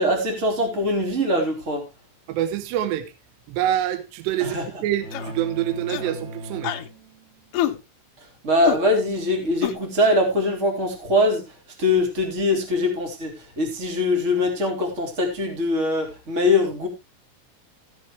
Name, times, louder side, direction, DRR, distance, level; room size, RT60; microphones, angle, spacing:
voice 1, 0.0-1.9 4.4-4.6 8.4-16.9, left 1 dB, 20° right, 2 dB, 2.7 m, -22 dB
voice 2, 2.3-3.1 3.5-4.6 4.8-6.7, right 12 dB, 70° right, 10 dB, 3.0 m, -26 dB
sound 1, 5.0-7.5, right 1 dB, 45° right, 2.9 m, -38 dB
sound 2, 5.1-5.4 5.9-6.2 6.6-6.9 7.5-7.8 8.6-8.8 9.6-9.8, left 13 dB, 80° left, 2.4 m, -26 dB
16.5 x 7.8 x 3.2 m, 0.24 s
omnidirectional pair, 5.7 m